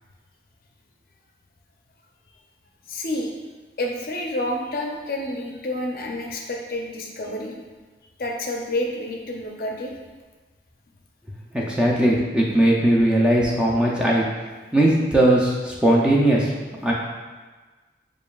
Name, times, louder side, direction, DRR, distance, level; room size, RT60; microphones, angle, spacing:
voice 1, 2.9-3.3 3.8-7.6 8.2-9.9, left 1 dB, 55° left, 0 dB, 0.5 m, -29 dB
voice 2, 11.5-14.2 14.7-16.5 16.8-16.9, right 1 dB, 5° right, -4 dB, 0.4 m, -19 dB
7.0 x 2.4 x 2.3 m, 1.3 s
head